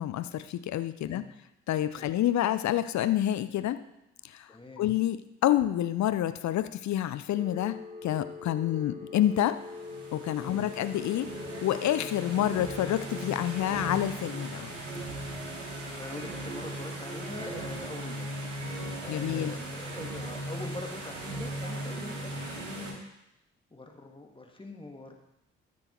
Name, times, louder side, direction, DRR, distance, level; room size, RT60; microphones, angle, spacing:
voice 1, 0.0-1.2 1.7-3.8 4.2-4.5 4.8-9.6 10.1-11.3 11.6-14.7 19.1-19.5, left 12 dB, 50° left, 13 dB, 0.7 m, -28 dB
voice 2, 4.5-4.8 10.4-10.7 15.9-18.3 18.7-23.0 23.7-25.2, left 2 dB, 15° left, 3 dB, 2.0 m, -43 dB
Telephone, 7.3-14.1, left 4 dB, 20° right, 1.6 m, -43 dB
sound 1, 9.5-22.9, right 1 dB, 85° right, 1.4 m, -38 dB
13.5 x 6.3 x 4.5 m, 0.86 s
figure-of-eight pair, 40°, 36 cm